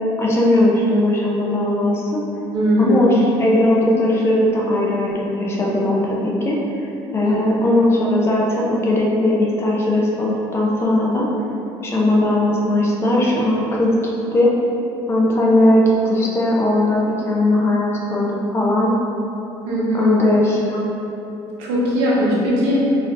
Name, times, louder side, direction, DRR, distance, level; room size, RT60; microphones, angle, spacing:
voice 1, 0.2-2.2 2.8-6.6 7.1-11.3 11.8-14.5 15.1-18.9 19.9-20.8, left 1 dB, 25° left, -3 dB, 0.5 m, -18 dB
voice 2, 2.5-3.0 7.2-7.3 19.6-20.2 21.6-22.9, equal, 85° right, -6 dB, 0.9 m, -19 dB
4.0 x 2.5 x 2.4 m, 3.0 s
cardioid pair, 140°, 10 cm